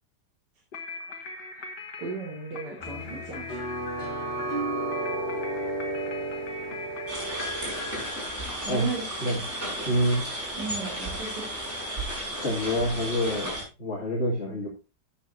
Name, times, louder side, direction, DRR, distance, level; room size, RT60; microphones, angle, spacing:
sound 1, 0.7-9.0, left 4 dB, 70° left, 2.1 m, -41 dB
voice 1, 2.0-3.5 8.6-9.0 10.6-11.5, right 4 dB, 75° right, -1 dB, 3.0 m, -35 dB
sound 2, 2.8-8.1, right 2 dB, 10° left, 5.6 m, -33 dB
sound 3, 7.1-13.6, right 1 dB, 40° right, 6.7 m, -34 dB
voice 2, 9.9-10.3 12.4-14.7, equal, 40° left, -2 dB, 2.6 m, -27 dB
13.0 x 9.5 x 2.7 m, 0.28 s
omnidirectional pair, 1.8 m